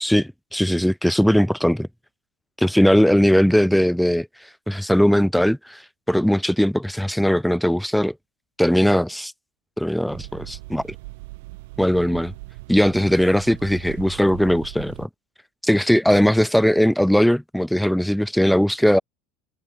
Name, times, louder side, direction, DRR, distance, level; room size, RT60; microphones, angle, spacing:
voice 1, 0.0-1.9 2.6-4.3 4.7-5.8 6.1-8.1 8.6-9.3 9.8-10.8 11.8-12.3 12.7-15.1 15.6-19.0, equal, ahead, 0.3 m, -19 dB
sound 1, 10.1-15.1, right 23 dB, 60° right, 1.3 m, -39 dB
open air
figure-of-eight pair, 70°, 0 cm